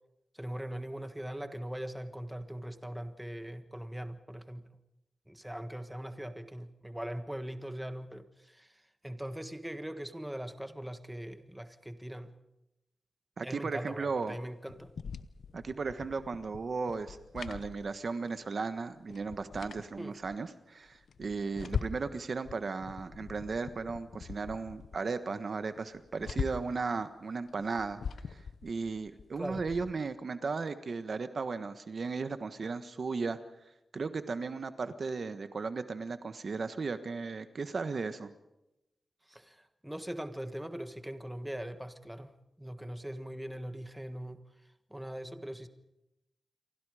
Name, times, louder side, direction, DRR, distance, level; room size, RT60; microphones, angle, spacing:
voice 1, 0.3-4.6 5.3-12.3 13.4-14.9 20.0-20.2 21.6-21.7 29.4-29.7 39.3-42.3 42.6-44.4 44.9-45.7, right 1 dB, 5° right, 9 dB, 1.5 m, -41 dB
voice 2, 13.4-14.4 15.5-28.0 28.3-33.4 33.9-38.3, right 4 dB, 55° right, 10 dB, 1.4 m, -36 dB
sound 1, 14.7-18.4 18.6-18.7 19.1-20.4 20.9-22.2 22.4-25.0 25.4-25.5 25.8-26.8 27.5-29.9, left 6 dB, 80° left, 0.9 m, -42 dB
29.0 x 24.0 x 5.0 m, 0.89 s
wide cardioid pair, 105°, 0 cm